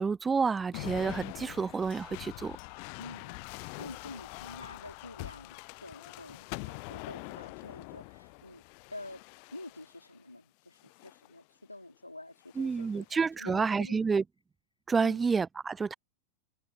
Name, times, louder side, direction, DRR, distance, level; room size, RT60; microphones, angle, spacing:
voice 1, 0.0-2.6 12.6-14.2 14.9-15.9, right 5 dB, 15° right, 0.4 m, -29 dB
sound 1, 0.7-10.1 10.8-11.3 12.4-13.1, left 39 dB, 45° left, 0.4 m, -44 dB
voice 2, 3.0-8.6 8.9-9.2 9.5-14.0 15.0-15.2, left 2 dB, 85° left, 4.2 m, -48 dB
figure-of-eight pair, 90°, 0 cm